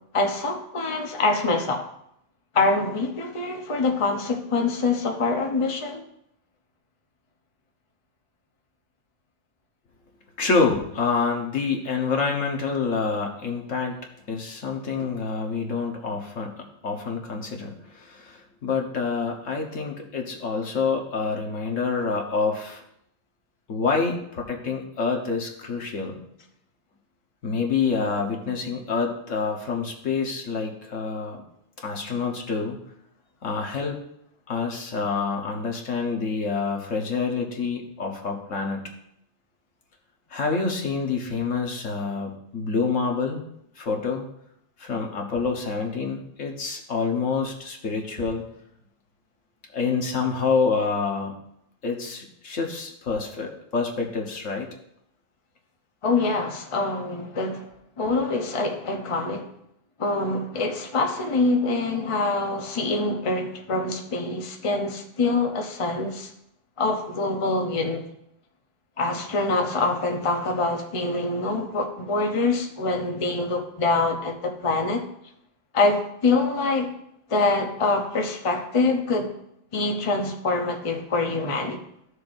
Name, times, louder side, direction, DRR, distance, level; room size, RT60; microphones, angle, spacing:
voice 1, 0.1-1.8 2.5-6.0 56.0-57.7 58.0-59.5 60.0-66.3 66.8-68.0 69.0-75.0 75.7-76.9 77.3-79.3 79.7-81.8, left 3 dB, 30° left, 3 dB, 0.9 m, -25 dB
voice 2, 10.4-14.0 14.3-22.8 23.7-26.2 27.4-31.4 31.8-32.8 33.4-34.0 34.5-38.8 40.3-43.4 43.8-44.2 44.8-48.4 49.7-51.3 51.8-54.7, left 4 dB, 70° left, 1 dB, 1.6 m, -27 dB
14.0 x 6.5 x 2.6 m, 0.75 s
omnidirectional pair, 1.3 m